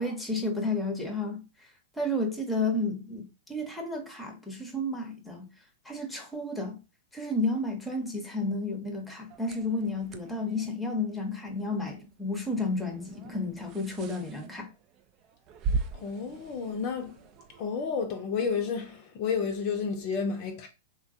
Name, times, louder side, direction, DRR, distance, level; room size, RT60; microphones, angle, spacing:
voice 1, 0.0-1.4 2.0-5.4 5.8-6.8 7.1-14.7, left 2 dB, 5° left, 0.8 m, -31 dB
sound 1, 9.3-17.6, right 4 dB, 35° right, 0.3 m, -39 dB
voice 2, 15.9-17.2 17.6-20.7, left 5 dB, 40° left, 0.6 m, -31 dB
3.5 x 2.2 x 2.7 m
figure-of-eight pair, 100°, 0 cm